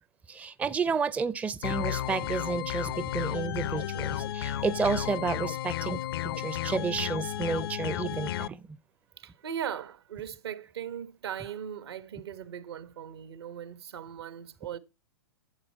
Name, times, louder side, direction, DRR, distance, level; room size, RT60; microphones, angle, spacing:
voice 1, 0.3-8.8, right 5 dB, 10° right, 0.4 m, -31 dB
sound 1, 1.6-8.5, left 12 dB, 65° left, 0.5 m, -33 dB
voice 2, 9.2-14.8, right 9 dB, 75° right, 1.2 m, -39 dB
12.0 x 7.4 x 4.3 m
hypercardioid pair, 110°, 13 cm